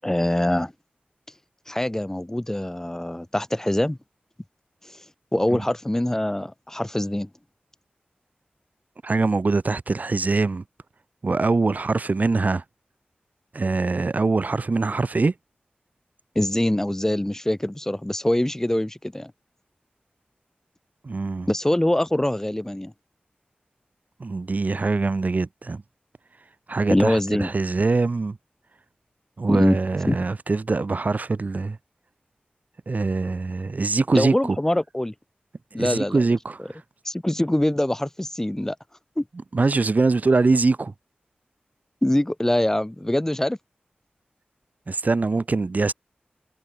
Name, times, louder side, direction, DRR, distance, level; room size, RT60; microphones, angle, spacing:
voice 1, 0.0-0.7 1.7-4.0 5.3-7.3 16.4-19.3 21.5-22.9 26.9-27.5 29.5-29.8 30.1-30.2 34.1-35.1 35.7-36.2 37.1-38.8 39.2-39.3 42.0-43.6, left 1 dB, 15° left, 7.1 m, -23 dB
voice 2, 9.0-10.6 11.2-12.6 13.5-15.3 21.0-21.5 24.2-25.8 26.7-28.4 29.4-31.8 32.9-34.6 35.7-36.8 39.5-40.9 44.9-45.9, right 3 dB, 50° right, 2.3 m, -23 dB
wide cardioid pair, 85°, 3 cm